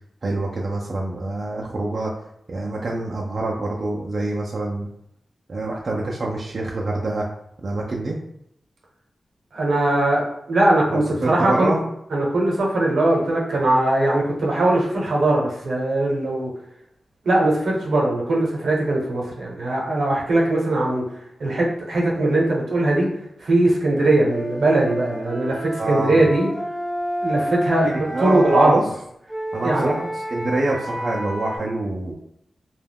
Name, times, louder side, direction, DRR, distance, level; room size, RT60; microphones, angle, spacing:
voice 1, 0.2-2.1 2.5-4.9 5.5-7.3 7.6-8.2 10.9-11.8 25.8-26.3 27.8-28.8 29.5-32.1, right 2 dB, 45° right, -2 dB, 0.3 m, -26 dB
voice 2, 9.5-11.7 12.1-16.5 17.2-21.0 21.4-23.1 23.4-26.5 27.2-28.8 29.6-29.9, right 2 dB, 80° right, -3 dB, 0.7 m, -20 dB
Wind instrument woodwind instrument, 24.3-28.7 29.3-31.6, equal, 30° left, 0.5 m, -30 dB
2.2 x 2.1 x 3.4 m, 0.75 s
wide cardioid pair, 140°, 0 cm